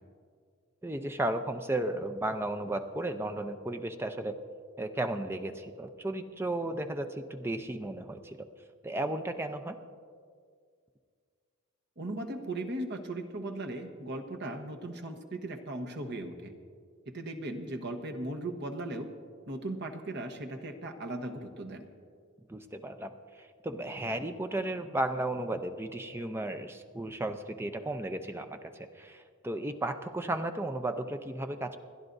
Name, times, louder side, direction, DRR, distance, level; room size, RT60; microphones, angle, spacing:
voice 1, 0.8-4.4 4.8-8.4 8.8-9.8 22.5-23.1 23.6-31.8, right 1 dB, 10° right, 7 dB, 0.5 m, -34 dB
voice 2, 12.0-16.5 17.1-19.1 19.5-21.9, right 1 dB, 50° right, 4 dB, 1.1 m, -37 dB
29.0 x 11.0 x 2.6 m, 2.1 s
head